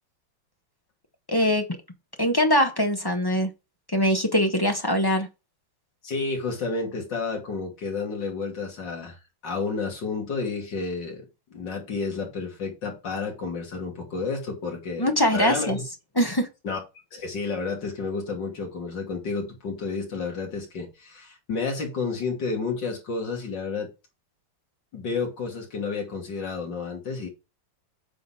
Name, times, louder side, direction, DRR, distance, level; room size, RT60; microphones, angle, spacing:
voice 1, 1.3-1.7 2.2-3.5 3.9-5.3 15.0-15.8 16.2-16.5, equal, 20° left, 0.7 m, -22 dB
voice 2, 6.0-11.2 11.5-15.8 16.6-16.8 17.1-23.9 24.9-27.3, left 4 dB, 65° left, 3.1 m, -31 dB
8.5 x 4.0 x 5.6 m
omnidirectional pair, 2.1 m